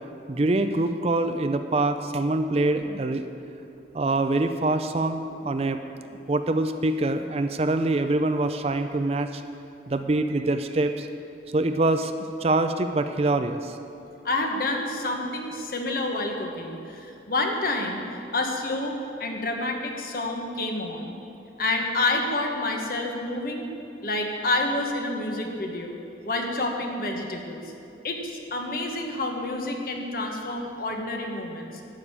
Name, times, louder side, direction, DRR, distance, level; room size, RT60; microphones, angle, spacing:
voice 1, 0.3-3.3 3.9-6.0 6.3-9.4 9.9-11.1 11.5-12.1 12.4-13.8, right 2 dB, 35° right, 9 dB, 0.4 m, -25 dB
voice 2, 14.2-18.0 18.3-21.1 21.6-23.7 24.0-26.0 26.2-27.6 28.0-31.8, left 2 dB, 55° left, 2 dB, 1.4 m, -28 dB
12.0 x 6.5 x 8.8 m, 2.7 s
head